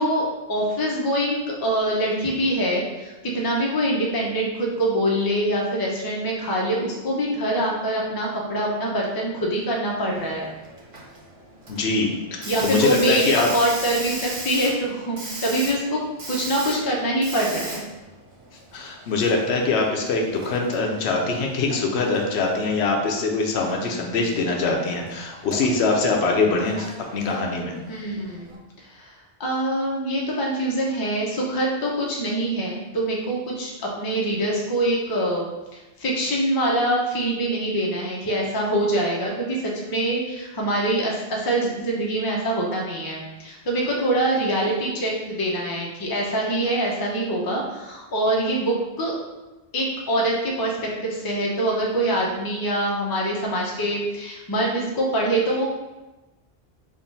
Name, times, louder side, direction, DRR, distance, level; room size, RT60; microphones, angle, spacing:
voice 1, 0.0-10.4 12.5-17.8 27.9-28.6 28.8-29.1 29.4-49.2 49.7-50.8 51.0-55.7, right 1 dB, 25° left, -2 dB, 0.5 m, -24 dB
Hiss, 10.2-28.6, right 2 dB, 40° right, 0.6 m, -38 dB
voice 2, 11.7-13.5 18.7-26.9 27.1-27.8, left 3 dB, 75° left, 1 dB, 0.8 m, -23 dB
3.6 x 2.3 x 3.9 m, 1.1 s
omnidirectional pair, 1.1 m